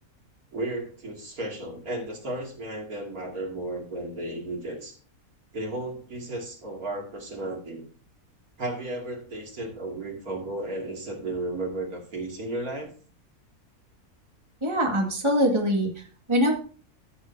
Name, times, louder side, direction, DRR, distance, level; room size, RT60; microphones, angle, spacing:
voice 1, 0.5-5.0 5.5-7.8 8.6-12.9, right 2 dB, 80° right, -1 dB, 3.1 m, -34 dB
voice 2, 14.6-15.9 16.3-16.6, equal, 20° right, 1 dB, 2.0 m, -23 dB
14.0 x 7.8 x 2.7 m, 0.39 s
omnidirectional pair, 1.5 m